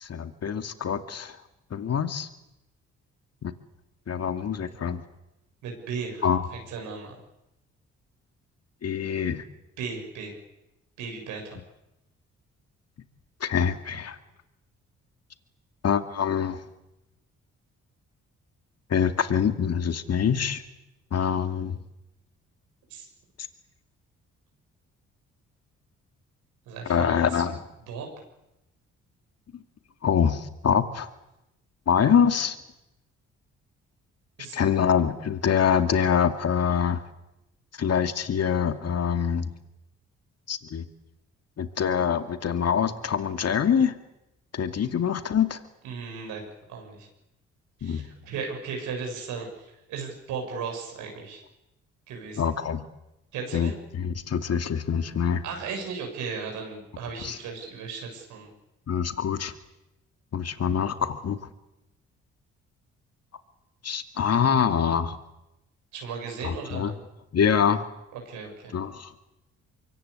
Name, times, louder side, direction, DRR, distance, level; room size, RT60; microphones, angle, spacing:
voice 1, 0.0-1.4 1.7-2.3 3.4-3.5 4.1-5.0 6.2-6.5 8.8-9.4 13.4-14.2 15.8-16.6 18.9-20.6 21.1-21.8 26.9-27.6 29.5-29.6 30.0-31.1 31.9-32.6 34.5-37.0 37.8-39.5 40.5-40.9 41.6-43.9 44.5-45.6 47.8-48.0 52.4-52.8 53.5-53.7 54.0-55.4 57.2-57.4 58.9-59.5 60.3-61.4 63.8-65.2 66.4-66.9 67.3-67.8 68.7-69.1, left 7 dB, 55° left, 8 dB, 2.4 m, -25 dB
voice 2, 5.6-7.2 9.8-10.3 11.0-11.6 22.9-23.1 26.7-27.4 27.9-28.1 34.4-34.6 45.8-46.4 46.7-47.1 47.8-51.4 52.1-52.4 53.3-53.8 55.4-58.5 65.9-66.9 68.1-68.7, right 5 dB, 85° right, 2 dB, 7.4 m, -36 dB
25.0 x 23.5 x 8.4 m, 0.91 s
supercardioid pair, 55°, 30 cm